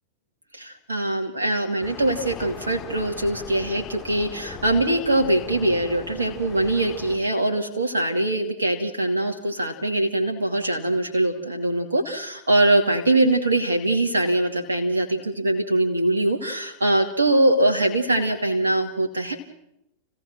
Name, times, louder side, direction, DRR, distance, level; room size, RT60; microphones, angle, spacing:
voice 1, 0.5-19.3, right 1 dB, 75° right, 2 dB, 2.6 m, -22 dB
sound 1, 1.8-7.2, left 5 dB, 15° left, 7.2 m, -39 dB
30.0 x 16.5 x 6.2 m, 0.85 s
figure-of-eight pair, 90°, 0 cm